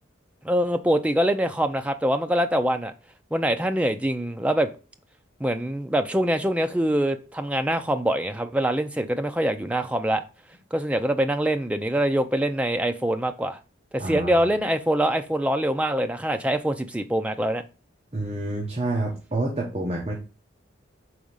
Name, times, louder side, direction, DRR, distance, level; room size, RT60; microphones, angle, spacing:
voice 1, 0.4-2.9 3.3-4.7 5.4-10.2 10.7-13.6 13.9-17.6, right 1 dB, 5° right, 0.4 m, -24 dB
voice 2, 14.0-14.5 18.1-20.2, right 2 dB, 30° right, 1.0 m, -28 dB
4.9 x 3.5 x 5.5 m
head